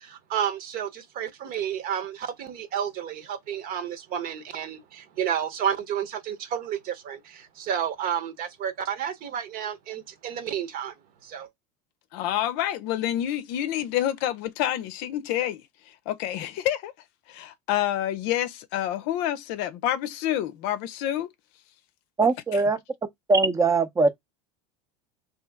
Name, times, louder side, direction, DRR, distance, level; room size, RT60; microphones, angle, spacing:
voice 1, 0.0-10.9 11.2-11.5, right 9 dB, 50° right, 1.0 m, -31 dB
voice 2, 12.1-16.9 17.3-21.3 22.5-22.6, left 12 dB, 65° left, 0.6 m, -28 dB
voice 3, 22.2-22.8 23.3-24.1, right 3 dB, 15° right, 0.6 m, -21 dB
3.1 x 2.9 x 3.5 m
supercardioid pair, 110°, 18 cm